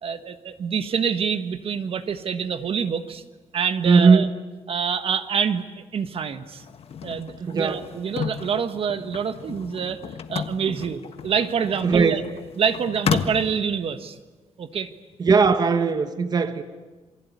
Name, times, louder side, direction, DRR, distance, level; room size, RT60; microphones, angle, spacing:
voice 1, 0.0-3.2 3.5-4.3 4.7-6.6 7.0-10.0 10.3-12.2 12.6-14.2 14.6-14.9, right 7 dB, 55° right, 10 dB, 1.5 m, -26 dB
voice 2, 3.8-4.3 7.5-7.8 11.8-12.2 15.2-16.6, right 5 dB, 35° right, 10 dB, 1.3 m, -18 dB
sound 1, 6.6-13.5, left 7 dB, 55° left, 1.5 m, -32 dB
28.0 x 22.0 x 9.6 m, 1.2 s
cardioid pair, 140°, 12 cm